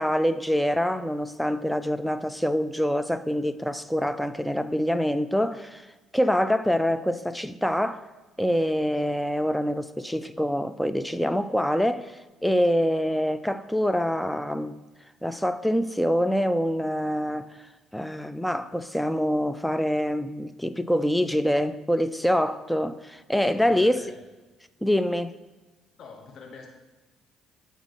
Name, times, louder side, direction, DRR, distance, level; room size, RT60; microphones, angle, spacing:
voice 1, 0.0-5.9 6.1-8.0 8.4-14.7 15.2-17.5 17.9-24.0 24.8-25.4, equal, 5° left, 0.5 m, -25 dB
voice 2, 23.5-24.2 26.0-26.7, left 4 dB, 55° left, 1.2 m, -45 dB
8.8 x 4.0 x 6.5 m
hypercardioid pair, 60°, 0 cm